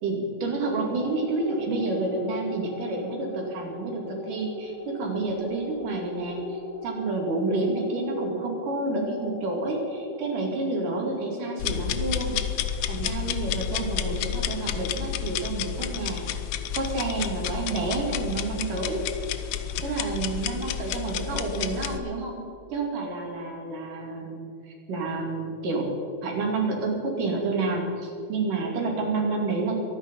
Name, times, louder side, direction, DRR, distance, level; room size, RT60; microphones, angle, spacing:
voice 1, 0.0-12.4 12.9-16.3 16.7-19.1 19.8-22.4 22.7-25.9 26.2-29.8, right 3 dB, 90° right, 0 dB, 4.1 m, -29 dB
sound 1, 1.0-15.8, equal, 35° left, 2.5 m, -40 dB
sound 2, 11.6-22.0, left 10 dB, 75° left, 1.7 m, -30 dB
23.5 x 9.6 x 5.4 m, 2.4 s
omnidirectional pair, 3.6 m